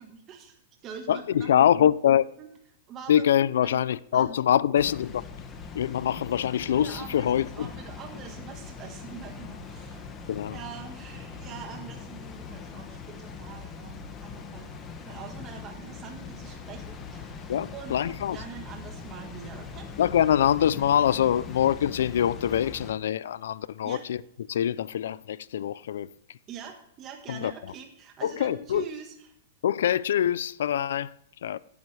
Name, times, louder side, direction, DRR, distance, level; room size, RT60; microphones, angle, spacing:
voice 1, 0.0-1.9 2.4-2.5 2.9-3.2 3.6-3.8 4.1-4.4 6.8-10.0 10.5-14.7 15.0-17.4 17.7-19.9 23.8-24.0 26.5-29.3, right 7 dB, 30° right, 1.6 m, -43 dB
voice 2, 1.1-2.3 3.1-5.3 5.7-7.7 10.3-10.6 17.5-18.4 20.0-24.2 24.5-26.4 27.3-27.5 28.2-28.9 29.6-31.1 31.4-31.6, left 10 dB, 80° left, 0.5 m, -24 dB
Water, 4.7-22.9, left 5 dB, 25° left, 1.8 m, -41 dB
13.5 x 11.0 x 3.4 m
hypercardioid pair, 135°, 0 cm